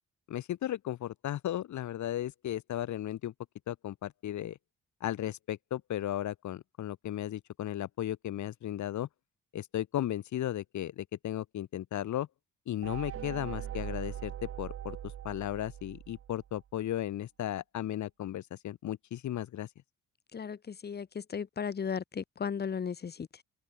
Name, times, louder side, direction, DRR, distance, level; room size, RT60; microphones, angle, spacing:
voice 1, 0.3-3.3 3.7-4.6 5.0-9.1 9.5-12.3 12.7-15.0 15.2-19.7, left 12 dB, 70° left, 2.1 m, -35 dB
sound 1, 12.8-16.6, right 10 dB, 50° right, 0.9 m, -41 dB
voice 2, 20.3-23.4, left 6 dB, 35° left, 1.0 m, -36 dB
open air
cardioid pair, 90°, 30 cm